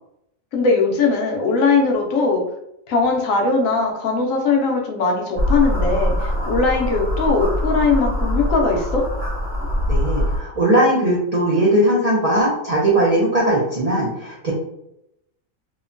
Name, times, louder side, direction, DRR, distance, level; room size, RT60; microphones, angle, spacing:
voice 1, 0.5-2.4 2.9-9.0, left 4 dB, 75° left, 1 dB, 1.0 m, -20 dB
sound 1, 5.3-10.4, left 1 dB, 50° right, 1.1 m, -22 dB
voice 2, 9.9-14.5, right 1 dB, 70° right, -4 dB, 0.3 m, -19 dB
2.8 x 2.1 x 2.5 m, 0.81 s
omnidirectional pair, 1.4 m